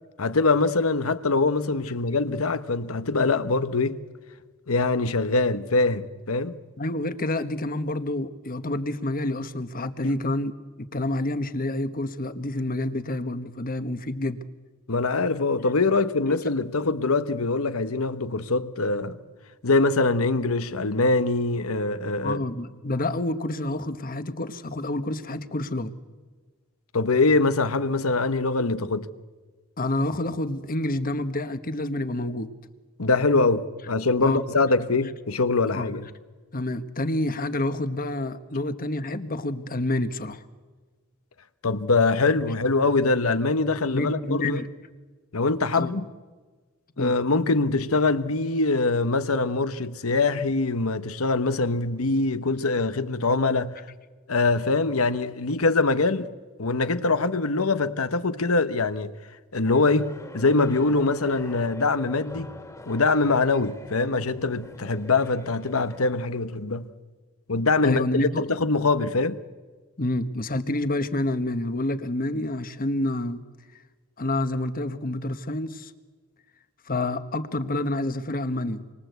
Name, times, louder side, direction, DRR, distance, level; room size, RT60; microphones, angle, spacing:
voice 1, 0.2-4.0 4.7-6.6 10.0-10.1 14.9-19.2 19.6-22.4 26.9-29.1 33.0-36.1 41.6-44.6 45.3-46.1 47.0-53.8 54.3-56.3 56.6-59.1 59.5-62.5 62.9-66.9 67.5-69.4, left 3 dB, 80° left, 1.1 m, -23 dB
voice 2, 6.8-10.5 10.8-14.4 16.3-16.5 22.2-25.9 29.8-32.5 34.2-34.4 35.7-35.9 36.5-40.4 43.9-44.7 45.7-45.9 47.0-47.2 67.8-68.5 70.0-73.4 74.2-75.9 76.9-78.8, left 1 dB, 45° left, 1.3 m, -28 dB
sound 1, 59.6-66.0, left 1 dB, 15° left, 2.1 m, -44 dB
28.0 x 24.0 x 8.1 m
head